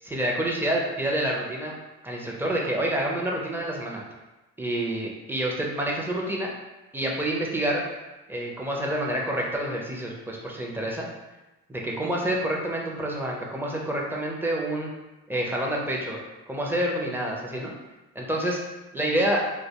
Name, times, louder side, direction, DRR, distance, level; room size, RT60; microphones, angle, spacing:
voice 1, 0.0-1.7 2.0-4.0 4.6-6.5 6.9-7.8 8.3-11.0 11.7-14.9 15.3-16.2 16.5-17.7 18.1-18.6 18.9-19.4, right 1 dB, 5° right, -2 dB, 0.5 m, -28 dB
2.4 x 2.2 x 2.8 m, 1.1 s
cardioid pair, 90°, 30 cm